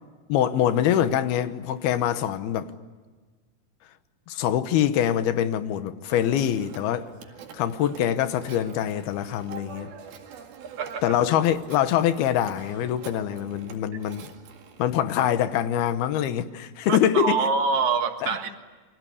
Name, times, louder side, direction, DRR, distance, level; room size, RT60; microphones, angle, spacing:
voice 1, 0.3-2.7 4.3-7.1 7.5-9.9 11.0-14.3 14.8-17.4 18.2-18.3, left 10 dB, 85° left, 3.1 m, -24 dB
Telephone, 6.1-15.2, right 7 dB, 75° right, 3.9 m, -46 dB
voice 2, 16.9-18.6, right 5 dB, 55° right, 2.7 m, -25 dB
28.5 x 23.5 x 8.5 m
omnidirectional pair, 4.3 m